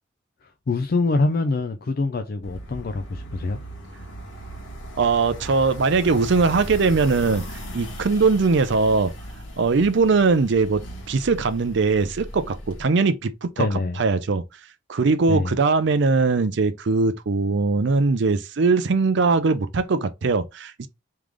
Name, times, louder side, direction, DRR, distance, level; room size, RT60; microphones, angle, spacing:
voice 1, 0.4-3.6 13.6-14.0 15.3-15.5, left 3 dB, 50° left, 0.4 m, -25 dB
sound 1, 2.4-12.8, equal, 65° left, 1.4 m, -37 dB
voice 2, 5.0-7.4 7.7-9.1 9.6-13.7 14.0-14.4 14.9-20.9, right 4 dB, 60° right, 0.5 m, -21 dB
3.5 x 3.2 x 3.6 m
head